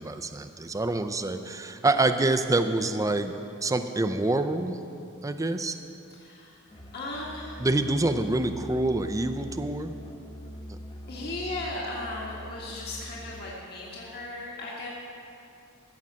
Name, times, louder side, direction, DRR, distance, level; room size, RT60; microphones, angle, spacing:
voice 1, 0.0-4.8 5.2-5.8 7.6-9.9 10.7-10.8, right 2 dB, 15° right, 9 dB, 0.5 m, -26 dB
voice 2, 6.2-6.6 6.9-7.6 11.1-14.9, left 2 dB, 50° left, -5 dB, 1.8 m, -36 dB
Musical instrument, 6.7-13.6, equal, 25° left, 0.9 m, -43 dB
15.0 x 6.5 x 7.4 m, 2.6 s
head